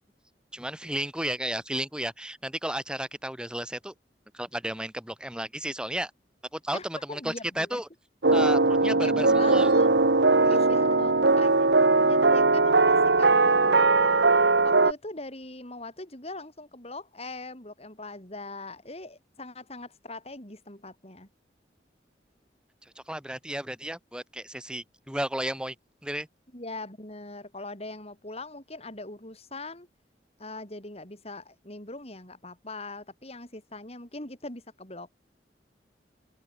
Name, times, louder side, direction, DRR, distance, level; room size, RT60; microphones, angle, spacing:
voice 1, 0.5-3.9 4.3-6.1 6.5-7.9 8.3-9.7 10.4-10.6 23.1-25.7 26.0-26.3, right 1 dB, 5° right, 3.0 m, -33 dB
voice 2, 6.7-7.8 9.0-9.9 10.4-11.7 12.1-21.3 26.5-29.9 30.4-35.1, left 2 dB, 35° left, 7.6 m, -41 dB
sound 1, 8.2-14.9, right 3 dB, 90° right, 1.7 m, -20 dB
open air
head